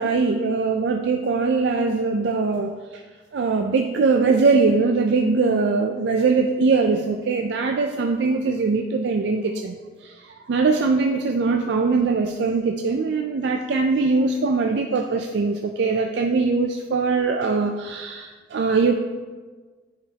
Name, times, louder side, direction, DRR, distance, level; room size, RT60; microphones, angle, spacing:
voice 1, 0.0-3.0 3.3-9.8 10.0-18.9, right 4 dB, 65° right, 4 dB, 0.4 m, -21 dB
9.8 x 5.0 x 2.8 m, 1.4 s
head